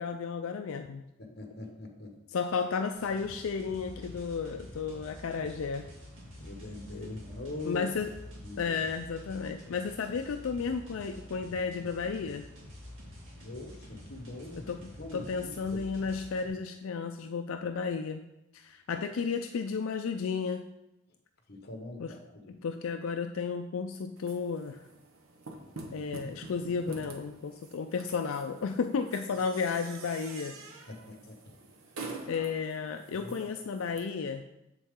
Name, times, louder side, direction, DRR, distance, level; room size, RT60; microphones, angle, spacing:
voice 1, 0.0-1.0 2.3-5.9 7.7-8.1 8.6-12.5 14.7-18.2 18.5-20.6 22.0-22.1 22.6-24.8 25.9-30.6 32.3-34.4, left 5 dB, 75° left, 6 dB, 0.4 m, -33 dB
voice 2, 1.2-2.2 6.4-7.9 8.4-8.8 13.1-14.7 15.0-15.8 21.5-22.6 30.9-31.6 32.3-32.5 33.2-33.5, left 2 dB, 50° left, 3 dB, 1.2 m, -43 dB
sound 1, 2.9-16.5, left 1 dB, 65° right, 2.4 m, -48 dB
sound 2, 24.2-34.0, right 3 dB, 85° right, 1.0 m, -47 dB
7.4 x 7.0 x 3.7 m, 0.90 s
head